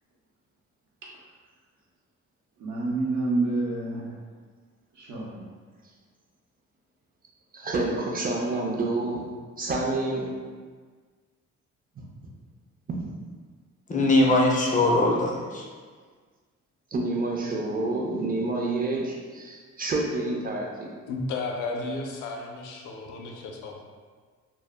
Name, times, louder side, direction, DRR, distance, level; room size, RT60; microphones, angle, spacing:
voice 1, 2.6-4.1 4.9-5.4, right 2 dB, 75° right, -4 dB, 0.7 m, -28 dB
voice 2, 7.5-9.3 9.6-10.3 12.9-13.1 16.9-20.9, right 2 dB, 30° right, -1 dB, 0.5 m, -28 dB
voice 3, 13.9-15.6, left 2 dB, 25° left, -1 dB, 0.4 m, -21 dB
voice 4, 21.1-23.8, left 3 dB, 85° left, 1 dB, 0.5 m, -33 dB
2.0 x 2.0 x 3.4 m, 1.5 s
cardioid pair, 90°, 30 cm